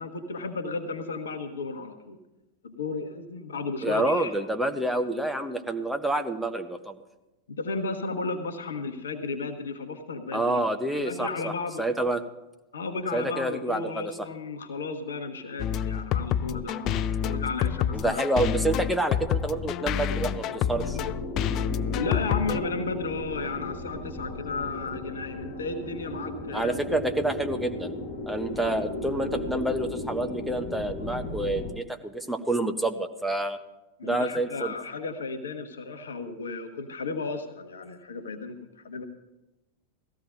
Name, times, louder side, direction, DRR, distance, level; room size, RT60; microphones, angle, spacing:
voice 1, 0.0-2.2 2.6-4.4 7.5-10.6 10.9-11.9 12.7-18.2 21.9-26.8 28.5-28.8 34.0-39.0, left 4 dB, 65° left, 7 dB, 1.1 m, -34 dB
voice 2, 3.8-7.0 10.3-11.5 11.8-12.2 13.1-14.3 17.9-21.0 26.5-27.9 28.3-33.6 34.0-34.7, right 1 dB, 5° right, 7 dB, 0.8 m, -28 dB
sound 1, 15.6-22.6, left 9 dB, 35° left, 0.4 m, -28 dB
sound 2, 17.4-31.7, left 1 dB, 50° left, 1.5 m, -37 dB
18.0 x 14.5 x 2.6 m, 0.99 s
figure-of-eight pair, 90°, 0 cm